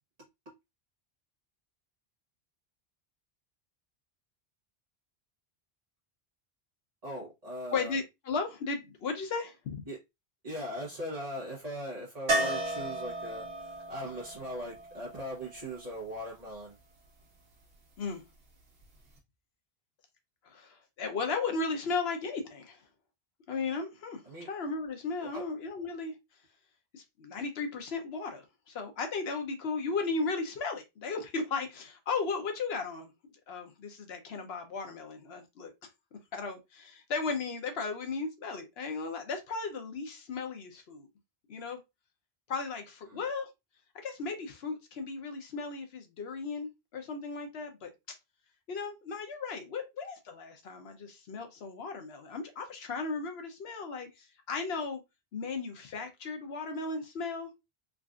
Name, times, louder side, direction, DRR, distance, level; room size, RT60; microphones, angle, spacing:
voice 1, 7.0-8.0 9.9-10.0 10.4-16.8 24.2-24.5 25.2-25.5 43.0-43.2, equal, 40° right, 1.0 m, -40 dB
voice 2, 7.7-9.8 18.0-18.2 20.4-22.8 23.5-26.1 26.9-33.1 33.5-35.7 36.3-41.1 41.5-41.8 42.5-43.5 43.9-48.2 48.7-55.0 55.3-57.5, left 4 dB, 80° left, 1.0 m, -36 dB
sound 1, 12.3-16.2 18.8-18.9 19.2-19.3, right 1 dB, 70° right, 1.3 m, -34 dB
3.7 x 2.4 x 2.3 m
omnidirectional pair, 1.1 m